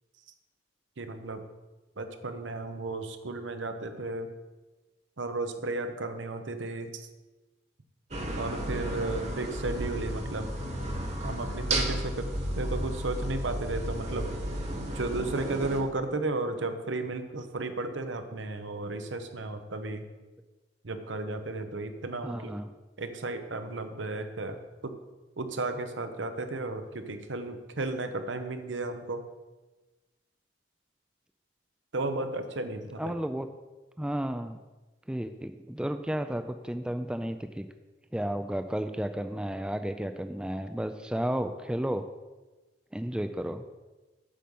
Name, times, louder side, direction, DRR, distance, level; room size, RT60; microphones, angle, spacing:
voice 1, 1.0-1.4 2.0-4.3 5.2-7.1 8.4-10.5 11.2-12.3 12.6-14.3 14.9-20.0 20.8-22.5 23.0-24.6 24.8-24.9 25.4-29.2 31.9-33.1, right 2 dB, 85° right, 8 dB, 0.9 m, -34 dB
sound 1, 8.1-15.8, right 1 dB, 35° right, 1.4 m, -33 dB
voice 2, 22.2-22.7 33.0-33.5 34.0-34.6 35.1-37.7 38.1-42.0 42.9-43.6, right 1 dB, 5° right, 8 dB, 0.3 m, -32 dB
8.7 x 6.3 x 5.4 m, 1.2 s
head